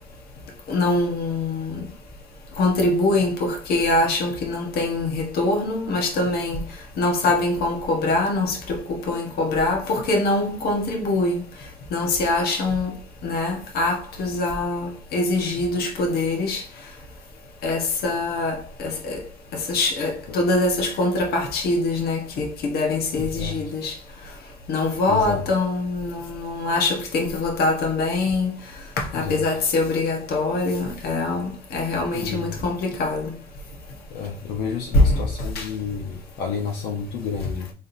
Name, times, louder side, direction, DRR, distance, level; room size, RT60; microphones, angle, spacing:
voice 1, 0.7-1.9 2.6-6.6 7.0-11.4 11.9-13.0 13.2-16.6 17.6-19.2 19.5-23.9 24.7-28.6 29.0-33.3 34.9-35.2 35.5-35.7, left 2 dB, 65° left, 1.2 m, -23 dB
voice 2, 23.2-23.7 25.1-25.4 29.1-29.5 32.1-32.6 34.1-37.7, left 6 dB, 90° left, 0.9 m, -30 dB
4.3 x 3.5 x 2.7 m
cardioid pair, 110°, 17 cm